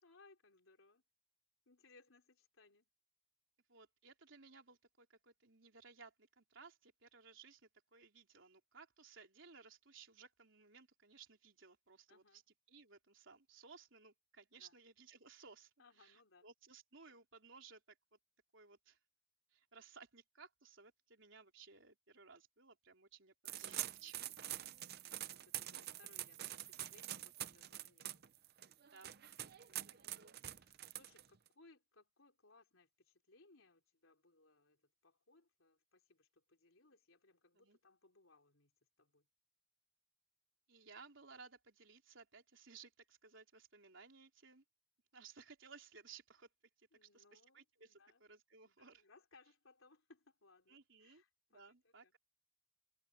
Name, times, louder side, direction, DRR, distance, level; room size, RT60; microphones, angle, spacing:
voice 1, 0.0-1.0 1.7-2.9 12.1-12.4 14.6-14.7 15.8-16.5 24.8-28.2 29.7-30.1 30.5-38.7 39.0-39.3 46.9-48.2 48.6-52.1, left 3 dB, 85° left, 3.7 m, -68 dB
voice 2, 3.7-12.4 12.7-15.7 16.0-18.2 18.5-19.0 19.5-24.3 28.9-29.6 29.9-30.4 37.5-37.8 40.7-44.6 45.1-46.5 46.8-49.0 50.7-51.2 51.5-52.2, right 5 dB, 65° right, 4.0 m, -60 dB
sound 1, 23.4-31.5, right 13 dB, 50° right, 0.7 m, -46 dB
head